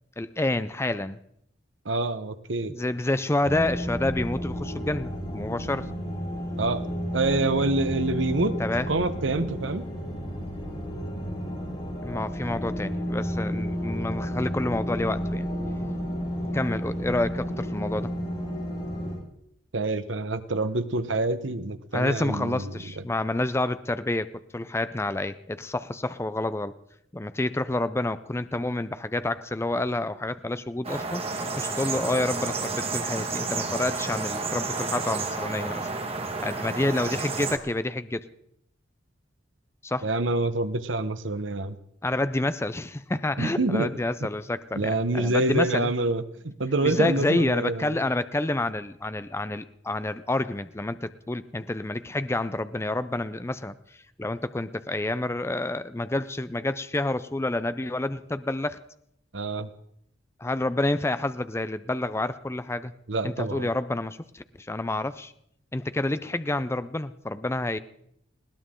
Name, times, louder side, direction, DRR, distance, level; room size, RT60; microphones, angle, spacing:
voice 1, 0.2-1.2 2.7-5.9 8.6-8.9 12.0-15.5 16.5-18.1 21.9-26.7 27.1-35.9 36.4-38.3 39.8-40.1 42.0-45.9 46.8-53.8 54.2-58.8 60.4-62.9 63.2-65.3 65.7-67.8, left 2 dB, 15° left, 13 dB, 0.5 m, -28 dB
voice 2, 1.8-2.7 6.6-6.8 7.1-8.6 8.9-9.8 19.7-22.7 40.0-41.8 43.4-43.9 44.7-48.0 59.3-59.7 63.1-63.7, right 2 dB, 85° right, 11 dB, 1.1 m, -26 dB
sound 1, 3.4-19.2, equal, 35° left, 5.6 m, -32 dB
sound 2, 30.8-37.6, right 3 dB, 35° right, 1.8 m, -31 dB
20.5 x 18.0 x 3.8 m, 0.72 s
head